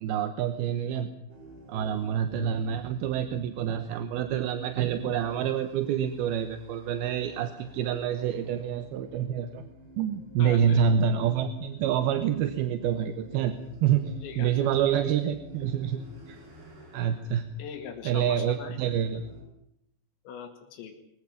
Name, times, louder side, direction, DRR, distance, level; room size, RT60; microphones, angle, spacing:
voice 1, 0.0-1.1 1.7-9.6 10.0-16.0 16.3-16.4 16.9-17.5 18.0-19.2, right 8 dB, 70° right, 10 dB, 2.6 m, -27 dB
sound 1, 1.3-19.4, right 1 dB, 45° right, 6.4 m, -50 dB
voice 2, 1.7-2.1 10.4-10.8 14.2-14.5 14.9-15.0 17.6-18.8 20.3-20.9, left 7 dB, 80° left, 4 dB, 4.4 m, -41 dB
23.5 x 16.0 x 10.0 m, 0.76 s
omnidirectional pair, 5.3 m